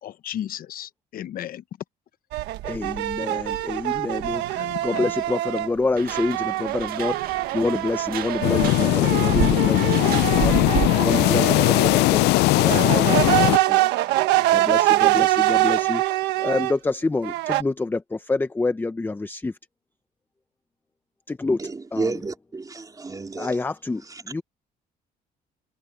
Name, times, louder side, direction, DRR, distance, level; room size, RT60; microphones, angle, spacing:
voice 1, 0.0-1.6 4.6-5.1, left 11 dB, 60° left, 0.9 m, -34 dB
sound 1, 2.3-5.7 6.1-12.1 12.6-16.7 17.2-17.6, right 17 dB, 90° right, 1.4 m, -24 dB
voice 2, 2.6-10.6 11.0-13.9 14.5-16.0 16.4-19.5 21.3-21.6 21.9-22.1 23.4-24.4, left 3 dB, 10° left, 0.7 m, -27 dB
sound 2, 6.0-11.2, right 10 dB, 60° right, 1.8 m, -31 dB
sound 3, 8.4-13.6, left 20 dB, 85° left, 0.4 m, -19 dB
voice 3, 21.6-23.6 24.0-24.4, right 3 dB, 20° right, 3.9 m, -31 dB
cardioid pair, 110°, 17 cm